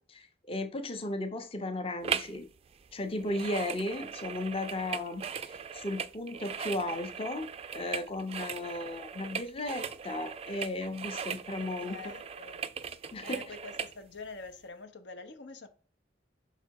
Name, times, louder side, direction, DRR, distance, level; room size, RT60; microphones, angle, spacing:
voice 1, 0.0-2.5 2.9-7.5 7.7-12.2 13.1-13.4, left 1 dB, 30° left, 0.7 m, -35 dB
sound 1, 2.0-2.4 2.7-14.0 14.5-14.6, right 7 dB, 35° right, 0.3 m, -39 dB
voice 2, 11.6-12.6 13.2-15.7, left 3 dB, 75° left, 0.7 m, -46 dB
5.7 x 4.0 x 4.5 m
head